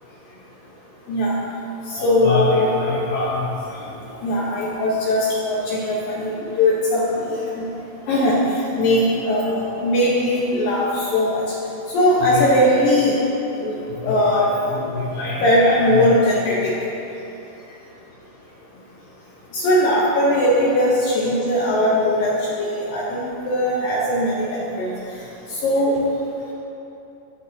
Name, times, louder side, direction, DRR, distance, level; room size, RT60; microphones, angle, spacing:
voice 1, 1.9-3.4 4.2-6.3 6.6-7.3 7.5-7.7 8.1-8.4 8.8-11.4 11.9-13.2 13.6-16.7 19.5-22.3 22.6-24.4 24.8-24.9 25.6-26.0, left 1 dB, 85° left, -6 dB, 1.9 m, -19 dB
12.5 x 9.5 x 2.7 m, 2.9 s
omnidirectional pair, 5.5 m